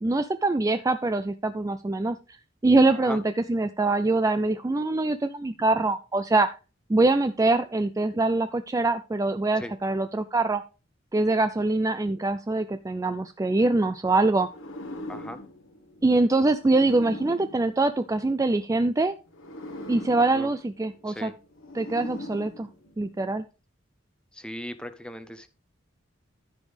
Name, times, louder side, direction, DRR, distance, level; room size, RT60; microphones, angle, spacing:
voice 1, 0.0-2.4 2.6-3.2 3.5-6.5 6.9-10.6 11.1-14.5 16.0-19.2 19.9-21.3 21.7-22.7 23.0-23.4, right 2 dB, 15° right, 0.4 m, -24 dB
sound 1, 14.4-18.6 19.3-23.2, left 1 dB, 85° left, 1.5 m, -41 dB
voice 2, 15.1-15.4 20.3-20.5 21.1-21.4 24.3-25.5, equal, 5° left, 0.7 m, -38 dB
14.0 x 5.3 x 3.4 m
head